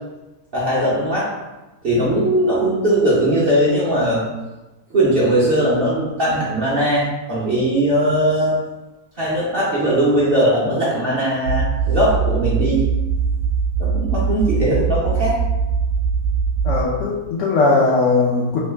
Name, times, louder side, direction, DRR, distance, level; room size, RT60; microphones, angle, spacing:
voice 1, 0.5-1.3 1.8-4.3 4.9-8.6 9.2-12.8 13.8-15.4, right 1 dB, 45° right, -8 dB, 0.8 m, -19 dB
sound 1, 11.4-16.8, right 6 dB, 70° right, 1.1 m, -21 dB
voice 2, 16.6-18.6, left 3 dB, 65° left, -6 dB, 0.7 m, -18 dB
3.0 x 2.4 x 3.3 m, 1.1 s
omnidirectional pair, 1.7 m